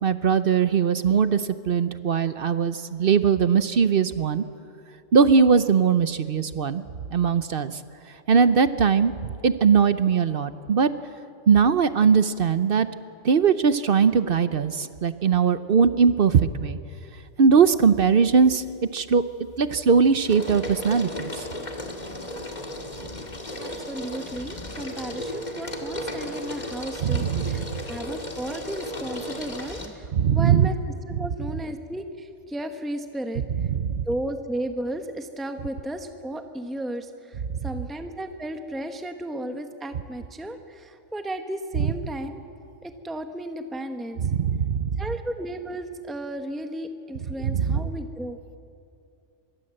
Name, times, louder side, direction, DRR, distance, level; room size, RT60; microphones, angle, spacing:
voice 1, 0.0-4.4 5.1-6.8 7.1-7.8 8.3-9.1 9.4-10.9 11.5-12.9 13.2-16.8 17.4-18.6 18.9-19.2 19.6-21.5 27.0-27.7 30.1-30.7 31.1-31.5 33.4-34.0 41.7-41.9 44.2-45.0 47.4-47.9, right 6 dB, 55° right, 12 dB, 0.9 m, -20 dB
sound 1, 17.8-18.4 18.8-29.9, left 1 dB, 35° left, 2.4 m, -35 dB
voice 2, 23.6-30.7 31.1-33.4 34.0-42.4 42.8-44.3 45.0-48.4, right 1 dB, ahead, 6 dB, 1.1 m, -34 dB
25.5 x 22.5 x 7.7 m, 2.5 s
omnidirectional pair, 1.3 m